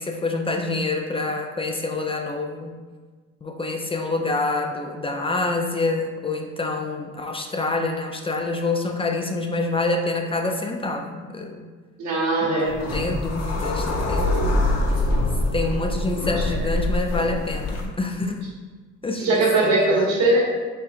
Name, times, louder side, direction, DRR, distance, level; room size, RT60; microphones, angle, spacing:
voice 1, 0.0-2.7 3.4-11.6 12.4-14.6 15.5-18.4 19.0-20.1, left 3 dB, 20° left, 3 dB, 0.3 m, -27 dB
voice 2, 12.0-12.8 16.1-16.2 19.2-20.4, right 2 dB, 70° right, -3 dB, 1.2 m, -20 dB
sound 1, 12.7-17.9, left 1 dB, 55° left, 0.7 m, -24 dB
4.3 x 3.7 x 2.4 m, 1.4 s
cardioid pair, 90°, 30 cm